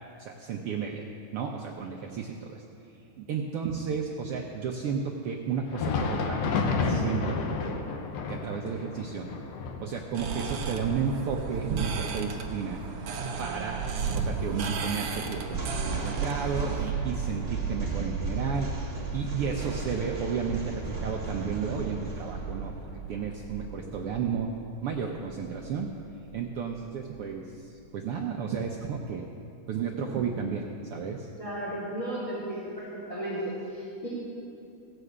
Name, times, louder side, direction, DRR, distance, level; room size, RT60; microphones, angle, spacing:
voice 1, 0.2-1.0 1.3-2.6 3.2-7.4 7.7-7.8 8.3-9.3 9.8-12.8 13.4-13.8 14.1-18.8 19.1-22.7 23.1-24.5 24.8-25.9 26.3-29.2 29.7-31.3, right 6 dB, 85° right, 1 dB, 1.2 m, -33 dB
Thunder, 5.6-15.0 15.3-15.5 16.2-16.4 17.4-17.5, left 4 dB, 65° left, 1.9 m, -33 dB
sound 1, 10.1-16.9, right 5 dB, 65° right, 1.6 m, -33 dB
sound 2, 15.5-26.8, right 4 dB, 30° right, 1.1 m, -35 dB
voice 2, 31.4-34.1, right 1 dB, 30° left, -9 dB, 3.8 m, -34 dB
16.5 x 6.2 x 8.0 m, 2.8 s
omnidirectional pair, 3.5 m